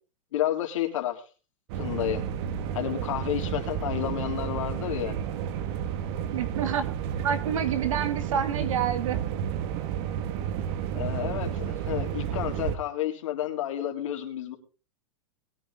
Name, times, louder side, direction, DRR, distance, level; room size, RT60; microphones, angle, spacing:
voice 1, 0.3-1.2 1.7-2.2 2.7-5.1 10.9-14.6, left 12 dB, 75° left, 4 dB, 3.7 m, -30 dB
sound 1, 1.7-12.8, right 9 dB, 50° right, 1.9 m, -31 dB
voice 2, 6.3-6.9 7.2-9.2, right 8 dB, 85° right, 10 dB, 2.5 m, -28 dB
21.0 x 10.5 x 3.8 m, 0.35 s
supercardioid pair, 135°, 17 cm